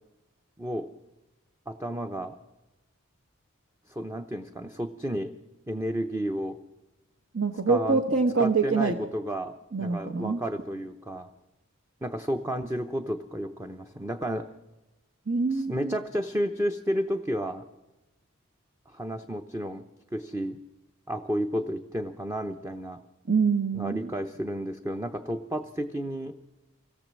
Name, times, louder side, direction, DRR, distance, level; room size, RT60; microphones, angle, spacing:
voice 1, 1.7-2.4 3.9-5.3 5.7-6.6 7.7-8.0 8.4-11.3 12.0-14.5 15.5-17.7 18.9-19.8 20.1-20.6 21.1-23.0 23.7-26.3, equal, 10° right, 7 dB, 0.7 m, -32 dB
voice 2, 7.3-8.9 9.7-10.4 15.3-16.0 23.3-24.1, right 4 dB, 60° right, 6 dB, 1.1 m, -25 dB
25.0 x 17.0 x 7.5 m, 1.0 s
head